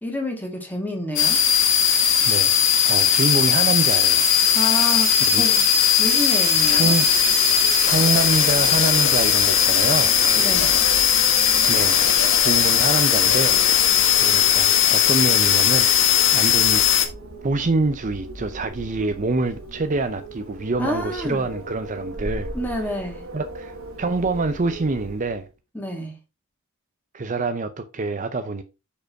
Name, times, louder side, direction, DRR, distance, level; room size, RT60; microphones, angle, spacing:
voice 1, 0.0-1.4 4.5-5.6 6.0-6.9 10.4-10.7 20.8-21.4 22.5-23.2 25.7-26.1, left 1 dB, 10° left, 2.2 m, -29 dB
sound 1, 1.2-17.1, left 8 dB, 60° left, 1.5 m, -18 dB
voice 2, 2.2-2.5 2.8-4.3 5.2-5.4 6.6-7.1 7.8-10.1 11.7-12.0 12.4-13.6 14.1-16.8 17.4-22.5 23.3-25.4 27.1-28.6, right 3 dB, 35° right, 0.5 m, -26 dB
Wind, 6.5-25.5, right 2 dB, 65° right, 1.6 m, -38 dB
6.7 x 5.2 x 4.6 m
head